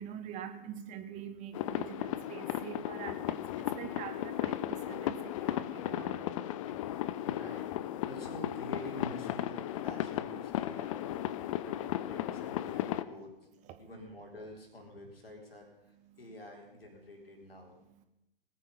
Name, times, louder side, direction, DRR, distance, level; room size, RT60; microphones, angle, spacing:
voice 1, 0.0-3.4 3.8-6.2, right 9 dB, 25° right, 8 dB, 1.2 m, -44 dB
sound 1, 1.5-13.0, left 12 dB, 35° left, 0.7 m, -35 dB
voice 2, 6.7-13.3 13.8-17.8, left 1 dB, 75° left, 1 dB, 4.3 m, -48 dB
20.0 x 9.1 x 5.5 m, 0.89 s
figure-of-eight pair, 115°, 30 cm